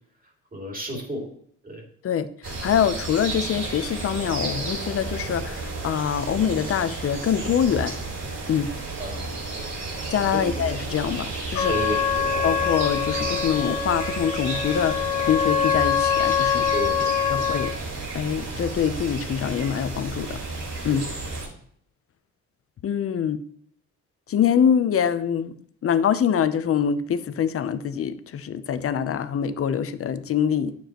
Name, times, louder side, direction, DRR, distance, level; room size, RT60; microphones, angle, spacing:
voice 1, 0.5-1.3 1.6-1.8 9.0-9.3 10.3-10.5 11.7-12.5 16.7-17.4 20.9-21.1, equal, 30° right, 1 dB, 2.4 m, -32 dB
voice 2, 2.0-8.0 8.5-8.7 10.1-11.7 12.4-16.7 17.3-17.7 18.1-20.4 20.8-21.1 22.8-23.4 24.3-25.6 25.8-30.7, left 8 dB, 50° left, 13 dB, 0.7 m, -24 dB
sound 1, 2.4-21.5, right 3 dB, 55° right, 3.3 m, -32 dB
Trumpet, 11.5-17.8, left 7 dB, 70° left, 1.4 m, -24 dB
9.0 x 7.0 x 3.0 m, 0.64 s
cardioid pair, 90°, 30 cm